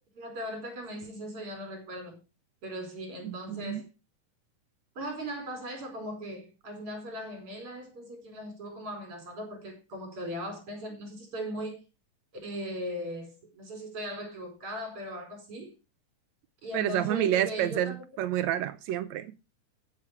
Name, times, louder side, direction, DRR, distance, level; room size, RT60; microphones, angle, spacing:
voice 1, 0.1-2.2 2.6-3.8 5.0-11.8 12.4-15.7 16.6-18.0, equal, 40° right, 5.4 m, -39 dB
voice 2, 3.2-3.8 16.7-19.3, right 11 dB, 80° right, 1.6 m, -29 dB
15.0 x 7.5 x 4.7 m
omnidirectional pair, 3.9 m